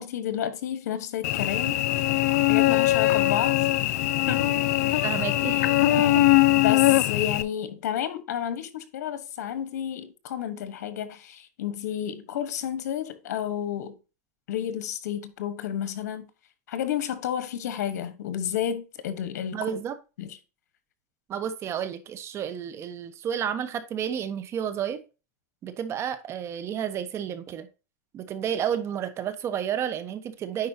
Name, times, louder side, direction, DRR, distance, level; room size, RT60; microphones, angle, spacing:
voice 1, 0.0-1.8 2.5-3.6 3.8-3.9 4.3-4.6 4.9-5.1 5.9-6.1 6.6-13.9 14.5-16.3 16.7-19.7 20.2-20.3, left 10 dB, 85° left, 1.3 m, -31 dB
Cricket / Buzz, 1.2-7.4, left 16 dB, 70° left, 0.6 m, -21 dB
voice 2, 5.0-6.2 19.5-20.0 21.3-25.0 25.6-27.7 28.1-30.7, right 9 dB, 30° right, 1.0 m, -31 dB
9.7 x 4.7 x 2.8 m
supercardioid pair, 140°, 9 cm